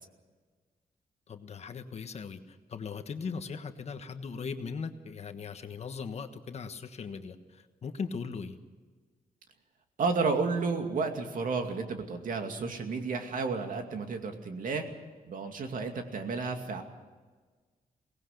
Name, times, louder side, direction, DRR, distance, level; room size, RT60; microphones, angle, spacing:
voice 1, 1.3-8.6, left 5 dB, 45° left, 8 dB, 1.3 m, -39 dB
voice 2, 10.0-14.8 15.3-16.8, right 4 dB, 65° right, 5 dB, 2.5 m, -32 dB
23.5 x 18.5 x 6.7 m, 1.4 s
wide cardioid pair, 170°, 15 cm